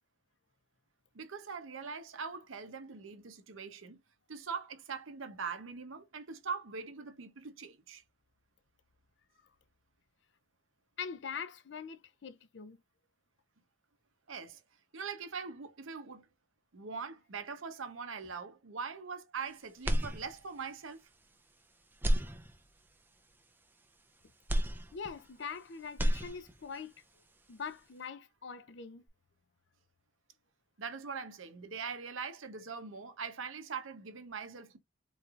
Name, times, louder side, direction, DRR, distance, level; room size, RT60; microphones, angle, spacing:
voice 1, 1.1-4.0 4.3-8.0 14.3-14.6 14.9-16.3 16.7-21.0 30.8-34.8, right 5 dB, 90° right, 0.8 m, -42 dB
voice 2, 11.0-12.8 24.9-26.9 27.5-29.0, left 6 dB, 60° left, 0.5 m, -43 dB
sound 1, 19.8-20.7 21.2-21.3 21.9-23.0 24.5-25.6 25.8-26.8, equal, 10° right, 0.4 m, -32 dB
3.9 x 3.2 x 2.4 m
head